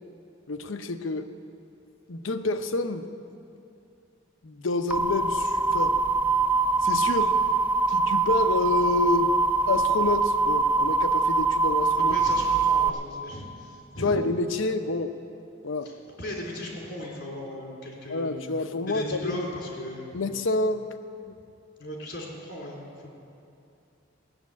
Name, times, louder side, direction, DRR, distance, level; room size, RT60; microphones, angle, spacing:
voice 1, 0.5-1.3 2.1-3.1 4.4-5.9 6.8-7.3 7.9-12.2 14.0-15.1 15.6-15.9 18.1-19.5 20.1-20.9 21.3-21.4, left 3 dB, 80° left, 8 dB, 0.8 m, -28 dB
sound 1, 4.9-12.9, right 3 dB, 10° right, 0.4 m, -23 dB
voice 2, 12.0-14.2 15.8-18.4 18.9-20.2 21.8-23.1, left 1 dB, 60° left, -2 dB, 3.7 m, -37 dB
16.0 x 7.3 x 9.5 m, 2.6 s
head